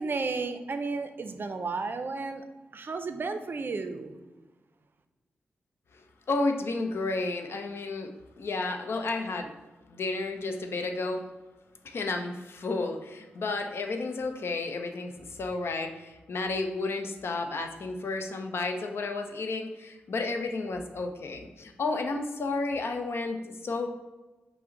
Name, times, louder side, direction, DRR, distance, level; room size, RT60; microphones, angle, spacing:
voice 1, 0.0-2.4 2.7-4.2, right 4 dB, 50° right, 8 dB, 0.5 m, -33 dB
voice 2, 6.3-8.1 8.4-9.5 9.9-11.2 11.8-23.9, left 3 dB, 65° left, 4 dB, 0.5 m, -32 dB
5.6 x 2.1 x 3.8 m, 1.2 s
supercardioid pair, 45°, 4 cm